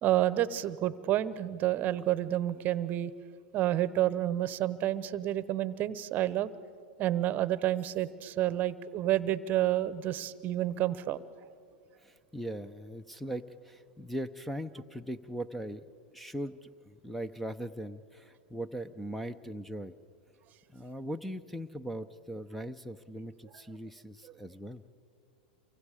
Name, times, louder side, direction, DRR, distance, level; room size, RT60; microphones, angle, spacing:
voice 1, 0.0-3.1 3.5-6.5 7.0-11.2, right 13 dB, 40° right, 17 dB, 0.9 m, -29 dB
voice 2, 12.0-15.8 16.1-19.9 20.7-24.8, right 1 dB, 5° left, 14 dB, 0.7 m, -40 dB
28.5 x 24.0 x 5.0 m, 2.2 s
hypercardioid pair, 105°, 5 cm